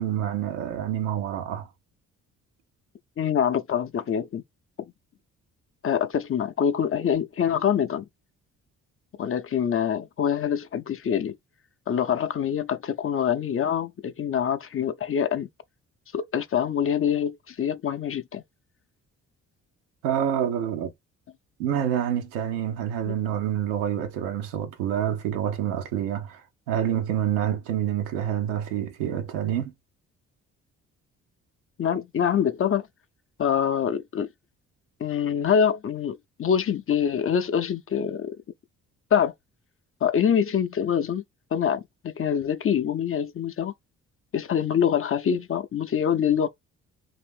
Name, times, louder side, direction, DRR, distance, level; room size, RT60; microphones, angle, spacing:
voice 1, 0.0-1.7 20.0-20.9 21.6-29.7, right 10 dB, 85° right, 0.7 m, -27 dB
voice 2, 3.2-4.4 4.8-4.9 5.8-8.1 9.2-11.4 11.9-15.5 16.1-18.4 23.0-23.2 31.8-32.9 33.4-34.3 35.0-38.3 39.1-39.3 40.0-41.2 41.5-43.7 44.3-46.5, left 8 dB, 35° left, 0.6 m, -25 dB
2.7 x 2.5 x 3.4 m
hypercardioid pair, 50°, 36 cm